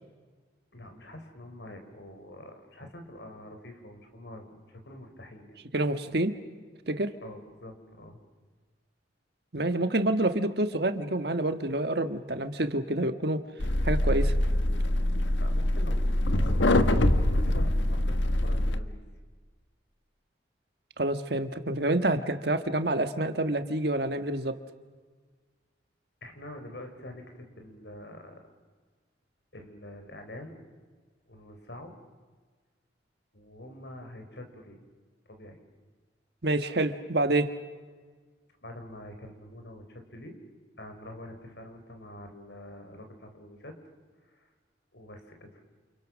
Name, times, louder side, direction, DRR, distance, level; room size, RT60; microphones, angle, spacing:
voice 1, 0.7-5.6 7.2-8.2 15.4-19.0 26.2-28.4 29.5-30.6 31.3-31.9 33.3-34.8 35.3-35.6 38.6-40.3 40.8-43.7 44.3-44.5 44.9-45.6, left 1 dB, 65° left, 5 dB, 4.7 m, -46 dB
voice 2, 5.7-6.3 6.9-7.1 9.5-13.4 13.8-14.3 21.0-24.6 36.4-37.5, right 1 dB, 60° right, 9 dB, 1.5 m, -27 dB
sound 1, 13.6-18.8, left 1 dB, 80° left, 1.4 m, -24 dB
29.5 x 29.0 x 6.4 m, 1.4 s
head